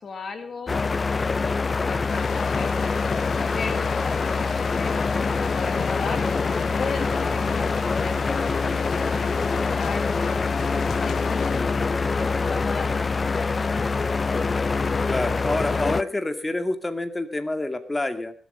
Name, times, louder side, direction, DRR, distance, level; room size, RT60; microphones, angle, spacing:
voice 1, 0.0-2.8 3.5-6.2 6.8-10.4 10.9-13.9, left 5 dB, 60° left, 9 dB, 1.9 m, -36 dB
sound 1, 0.7-16.0, left 4 dB, 40° left, 0.6 m, -25 dB
sound 2, 2.1-11.6, left 9 dB, 85° left, 0.5 m, -36 dB
voice 2, 15.0-18.3, left 2 dB, 20° left, 8 dB, 2.2 m, -27 dB
21.0 x 8.2 x 5.3 m, 0.40 s
cardioid pair, 60°, 0 cm